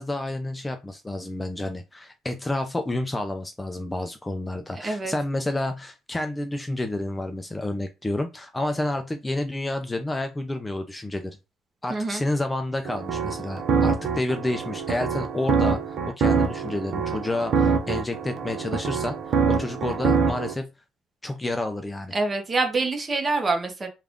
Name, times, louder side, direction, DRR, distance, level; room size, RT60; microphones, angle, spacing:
voice 1, 0.0-11.4 11.8-20.7 21.2-22.1, left 1 dB, 15° left, 6 dB, 0.4 m, -30 dB
voice 2, 4.8-5.1 11.9-12.2 22.1-23.9, right 3 dB, 25° right, 4 dB, 1.0 m, -25 dB
sound 1, 12.8-20.5, right 5 dB, 60° right, 0.6 m, -25 dB
3.4 x 2.4 x 3.5 m, 0.26 s
cardioid pair, 100°, 0 cm